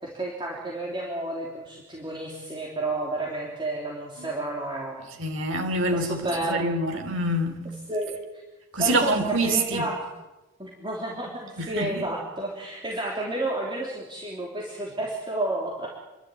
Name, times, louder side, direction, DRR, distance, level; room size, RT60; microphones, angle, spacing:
voice 1, 0.0-5.1 5.9-6.7 7.9-8.4 8.7-9.1 9.4-10.0 10.6-15.9, right 1 dB, 20° right, 3.5 m, -31 dB
voice 2, 5.2-7.6 8.7-9.9 11.6-12.1, right 1 dB, 60° right, 3.3 m, -26 dB
29.0 x 12.5 x 9.5 m
head